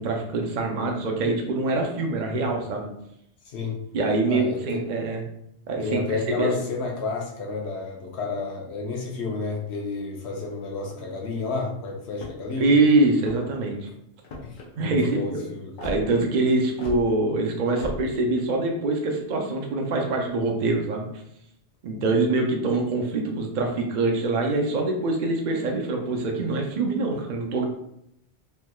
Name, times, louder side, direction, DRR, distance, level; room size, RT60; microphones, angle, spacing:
voice 1, 0.0-2.9 3.9-5.2 5.7-6.5 12.6-13.9 14.8-15.4 15.8-21.1 21.8-27.6, right 2 dB, 55° right, 1 dB, 0.5 m, -24 dB
voice 2, 3.5-3.8 4.3-4.8 5.8-12.7 14.4-15.9 21.9-22.1, left 3 dB, 75° left, 0 dB, 1.0 m, -31 dB
sound 1, 12.1-12.5 13.1-13.6 14.2-14.7 15.8-16.0 16.8-17.0 17.8-18.0, left 1 dB, 55° left, 0.7 m, -36 dB
3.2 x 2.7 x 2.2 m, 0.76 s
omnidirectional pair, 1.2 m